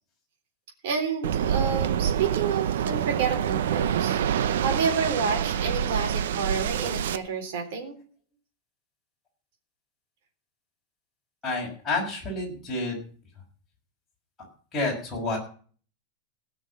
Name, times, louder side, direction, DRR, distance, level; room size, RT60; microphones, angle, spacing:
voice 1, 0.8-4.2 4.6-8.0, right 5 dB, 55° right, 2 dB, 3.7 m, -29 dB
Waves surf, 1.2-7.2, right 9 dB, 85° right, 0.8 m, -26 dB
voice 2, 11.4-13.0 14.7-15.4, left 2 dB, 15° left, -3 dB, 6.0 m, -29 dB
17.0 x 6.3 x 7.4 m, 0.43 s
supercardioid pair, 175°, 0 cm